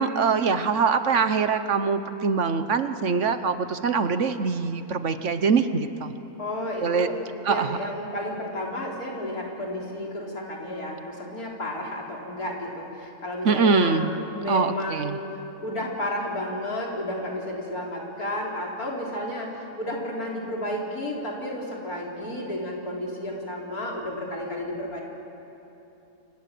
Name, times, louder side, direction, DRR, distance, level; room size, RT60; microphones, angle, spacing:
voice 1, 0.0-6.1 6.8-7.1 7.4-7.8 13.4-14.1 14.5-15.2, right 5 dB, 55° right, 10 dB, 1.3 m, -23 dB
voice 2, 6.4-7.2 7.5-15.2 15.6-25.0, left 1 dB, 90° left, -2 dB, 4.6 m, -32 dB
29.0 x 26.0 x 7.7 m, 3.0 s
omnidirectional pair, 1.5 m